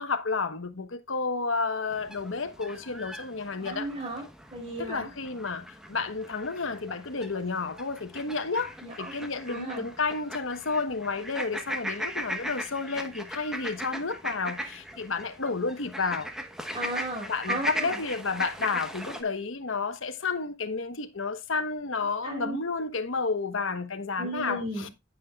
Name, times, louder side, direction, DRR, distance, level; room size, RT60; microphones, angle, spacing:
voice 1, 0.0-3.9 4.8-16.3 17.3-24.9, left 4 dB, 70° left, 1.1 m, -31 dB
sound 1, 1.9-19.2, equal, 5° right, 1.0 m, -39 dB
voice 2, 3.6-4.2 4.5-5.1 8.8-9.1 9.5-9.9 16.7-18.0 22.2-22.6 24.2-24.8, right 1 dB, 30° right, 4.6 m, -35 dB
9.6 x 9.4 x 2.3 m
head